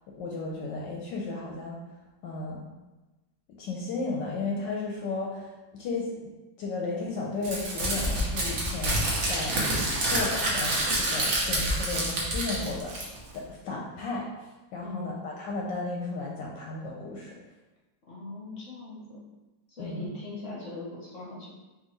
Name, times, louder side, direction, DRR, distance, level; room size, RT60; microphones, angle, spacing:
voice 1, 0.0-1.8 2.2-2.6 3.6-6.1 6.6-9.0 9.3-9.6 10.1-13.1 13.3-14.3 14.7-17.3 19.8-20.1, left 3 dB, 70° left, -2 dB, 1.2 m, -34 dB
Crumpling crinkling, 7.4-13.4, right 1 dB, 50° right, 1.0 m, -28 dB
voice 2, 14.8-15.1 18.1-19.2 19.7-21.5, left 2 dB, 50° left, -6 dB, 1.0 m, -40 dB
4.5 x 3.4 x 3.1 m, 1.1 s
omnidirectional pair, 2.2 m